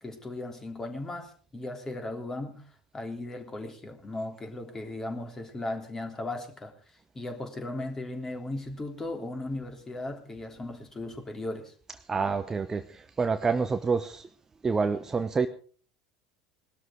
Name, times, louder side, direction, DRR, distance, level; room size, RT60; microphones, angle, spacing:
voice 1, 0.0-2.6 2.9-11.7, left 2 dB, 20° left, 3.3 m, -37 dB
voice 2, 12.1-14.3 14.6-15.5, right 4 dB, 20° right, 0.9 m, -27 dB
20.0 x 12.5 x 4.7 m
figure-of-eight pair, 70°, 3 cm